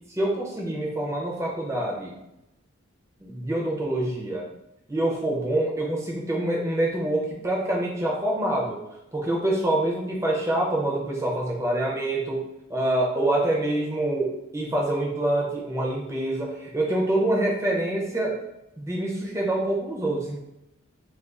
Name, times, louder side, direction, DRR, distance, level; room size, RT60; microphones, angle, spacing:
voice 1, 0.2-2.1 3.2-4.5 4.9-8.8 9.1-18.4 18.8-20.4, right 1 dB, 15° right, -2 dB, 0.5 m, -26 dB
2.4 x 2.3 x 3.5 m, 0.88 s
head